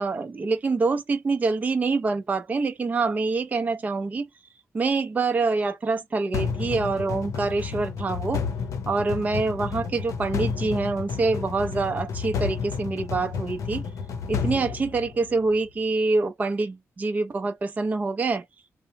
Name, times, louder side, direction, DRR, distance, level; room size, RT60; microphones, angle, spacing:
voice 1, 0.0-4.3 4.7-8.4 8.9-13.8 14.3-18.4, right 3 dB, 30° right, 0.5 m, -26 dB
sound 1, 6.3-15.5, left 6 dB, 70° left, 0.6 m, -31 dB
3.0 x 2.0 x 2.7 m
wide cardioid pair, 130°, 5 cm